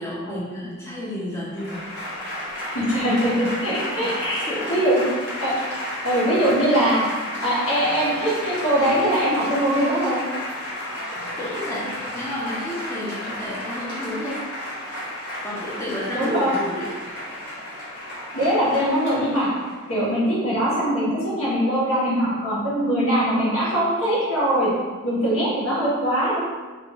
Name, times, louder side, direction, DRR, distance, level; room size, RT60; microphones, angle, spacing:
voice 1, 0.0-1.9 3.9-4.8 11.4-14.4 14.9-15.0 15.4-17.1, left 1 dB, 10° left, -7 dB, 0.4 m, -32 dB
Applause / Crowd, 1.5-20.0, left 1 dB, 55° left, 1.1 m, -32 dB
voice 2, 2.7-5.0 5.4-5.5 6.0-7.0 7.4-10.2 16.1-16.5 18.3-19.5 19.9-24.7 25.0-26.4, equal, 80° left, -8 dB, 1.2 m, -22 dB
2.5 x 2.5 x 2.9 m, 1.4 s
head